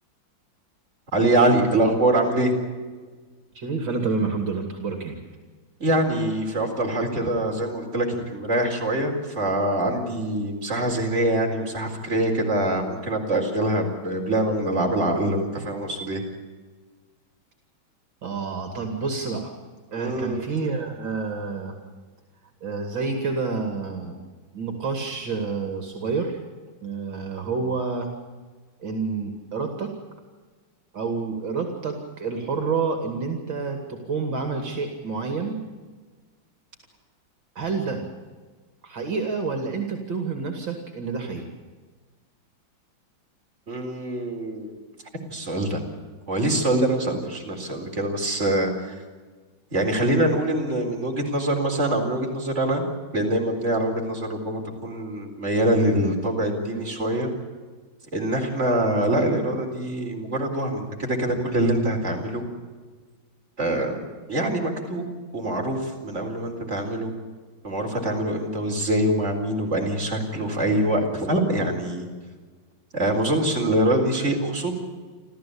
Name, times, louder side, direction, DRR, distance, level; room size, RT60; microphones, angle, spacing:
voice 1, 1.1-2.5 5.8-16.2 20.0-20.4 43.7-44.7 45.3-45.8 46.3-48.9 49.7-52.8 53.1-57.3 58.1-62.4 63.6-64.0 64.3-65.1 65.3-67.1 67.6-72.1 72.9-74.7, right 1 dB, 35° right, 1 dB, 4.5 m, -24 dB
voice 2, 3.5-5.2 18.2-19.5 19.9-21.8 22.6-24.2 24.5-26.4 26.8-28.1 28.8-29.9 30.9-35.6 37.5-38.0 38.8-41.5, right 4 dB, 65° right, 5 dB, 3.1 m, -28 dB
29.0 x 14.0 x 8.6 m, 1.4 s
omnidirectional pair, 2.2 m